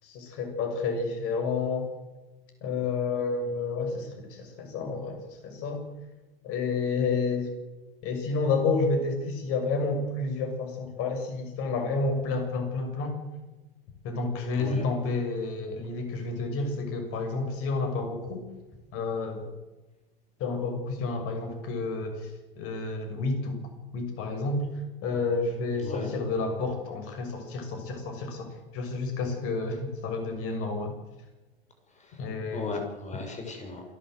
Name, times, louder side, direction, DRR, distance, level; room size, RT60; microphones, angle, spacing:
voice 1, 0.0-1.9 2.6-5.8 6.4-7.5 8.0-13.2 14.0-18.4 18.9-19.5 20.4-23.6 23.9-24.7 25.0-28.5 28.7-30.9 32.2-32.7, left 3 dB, 50° left, 5 dB, 6.7 m, -30 dB
voice 2, 25.8-26.1 31.9-32.2 32.5-33.8, left 3 dB, 25° left, 3 dB, 6.8 m, -36 dB
28.0 x 12.0 x 8.0 m, 1.1 s
hypercardioid pair, 90°, 30 cm